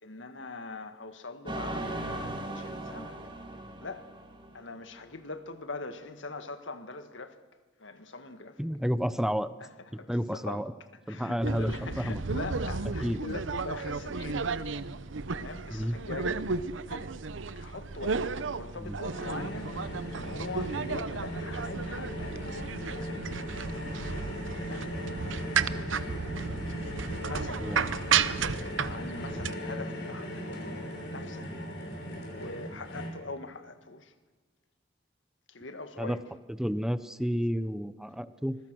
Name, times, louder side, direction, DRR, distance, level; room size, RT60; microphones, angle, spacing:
voice 1, 0.0-3.2 3.8-4.3 4.5-7.4 7.8-8.6 9.6-9.7 10.0-10.7 11.1-14.5 15.3-16.4 16.9-17.2 17.6-23.6 24.6-24.9 26.4-27.8 28.4-31.5 32.3-34.1 35.5-36.2, left 3 dB, 80° left, 1.7 m, -42 dB
sound 1, 1.5-4.9, right 1 dB, 25° right, 2.4 m, -38 dB
voice 2, 8.6-9.5 9.9-10.7 11.1-12.2 13.0-13.2 15.7-16.0 18.8-19.0 27.6-27.8 36.0-36.2 36.6-38.6, equal, 5° right, 0.6 m, -30 dB
sound 2, 11.4-29.5, right 5 dB, 85° right, 0.8 m, -33 dB
sound 3, 19.1-33.1, equal, 60° left, 5.6 m, -38 dB
26.0 x 21.5 x 6.2 m
head